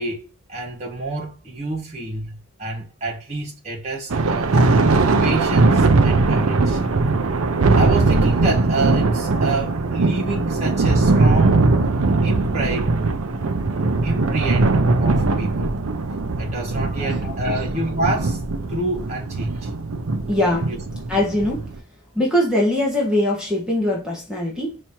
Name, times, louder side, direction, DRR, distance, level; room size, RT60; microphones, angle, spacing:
voice 1, 0.0-4.6 5.2-6.8 7.8-11.6 12.2-12.9 14.0-15.7 16.4-18.4 18.7-19.7 20.5-20.8, right 2 dB, 30° right, 1.6 m, -28 dB
Thunder, 4.1-21.8, right 3 dB, 80° right, 0.6 m, -20 dB
voice 2, 17.0-17.5 20.3-20.7 21.1-21.7 22.1-24.8, left 1 dB, 5° right, 1.5 m, -22 dB
5.6 x 3.1 x 2.8 m
head